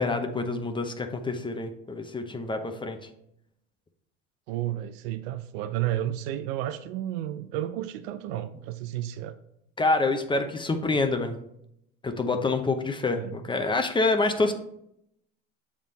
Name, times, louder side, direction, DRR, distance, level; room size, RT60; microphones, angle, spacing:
voice 1, 0.0-3.0 9.8-11.4 12.0-14.5, left 3 dB, 15° left, 5 dB, 0.8 m, -27 dB
voice 2, 4.5-9.4 13.1-13.4, right 13 dB, 75° right, 10 dB, 0.5 m, -32 dB
7.2 x 3.7 x 4.0 m, 0.76 s
supercardioid pair, 90°, 32 cm